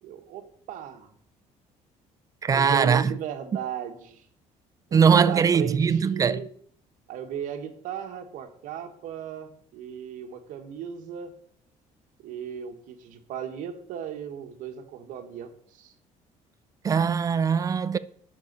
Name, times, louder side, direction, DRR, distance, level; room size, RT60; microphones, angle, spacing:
voice 1, 0.0-1.1 2.5-4.2 4.9-6.5 7.1-11.3 12.2-15.9, right 9 dB, 80° right, 1.5 m, -36 dB
voice 2, 2.4-3.1 4.9-6.4 16.8-18.0, right 6 dB, 25° right, 0.4 m, -21 dB
10.5 x 6.8 x 6.7 m
cardioid pair, 155°, 13 cm